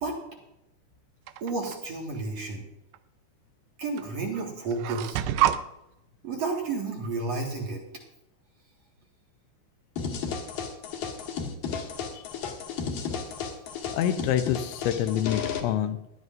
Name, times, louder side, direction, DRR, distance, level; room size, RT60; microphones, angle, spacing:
sound 1, 1.3-1.8 2.9-3.0 4.0-4.1 4.3-5.6, right 12 dB, 85° right, 2.5 m, -27 dB
voice 1, 1.4-2.7 3.8-5.2 6.2-7.8, right 3 dB, 60° right, 0 dB, 1.8 m, -31 dB
sound 2, 10.0-15.6, left 6 dB, 60° left, 2.5 m, -33 dB
voice 2, 13.9-16.0, left 10 dB, 80° left, 9 dB, 2.8 m, -27 dB
19.0 x 12.5 x 2.6 m, 0.86 s
omnidirectional pair, 5.6 m